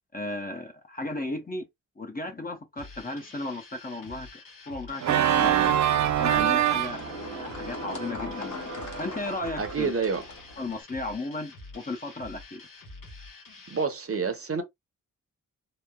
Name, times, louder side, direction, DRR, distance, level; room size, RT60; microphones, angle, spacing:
voice 1, 0.1-1.6 2.0-4.4 4.7-5.7 6.2-7.0 7.3-9.9 10.6-12.6, left 2 dB, 25° left, 0.6 m, -35 dB
sound 1, 2.8-13.9, left 3 dB, 85° left, 1.2 m, -47 dB
Organ, 5.0-9.9, right 10 dB, 60° right, 0.4 m, -26 dB
sound 2, 5.4-10.8, left 3 dB, 60° left, 1.2 m, -40 dB
voice 2, 9.6-10.2 13.7-14.6, right 5 dB, 45° right, 0.8 m, -28 dB
3.0 x 2.0 x 2.2 m
cardioid pair, 60°, 33 cm